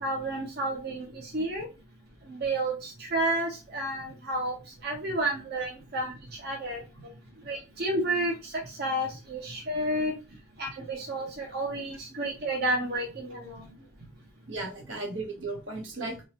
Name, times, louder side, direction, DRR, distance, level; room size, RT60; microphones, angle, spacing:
voice 1, 0.0-1.7 2.3-4.5 4.8-6.1 6.4-6.8 7.5-10.1 10.6-13.6, right 1 dB, 55° right, 0 dB, 0.8 m, -31 dB
voice 2, 14.5-16.2, right 2 dB, 80° right, 1 dB, 1.1 m, -36 dB
3.7 x 2.9 x 2.9 m, 0.30 s
head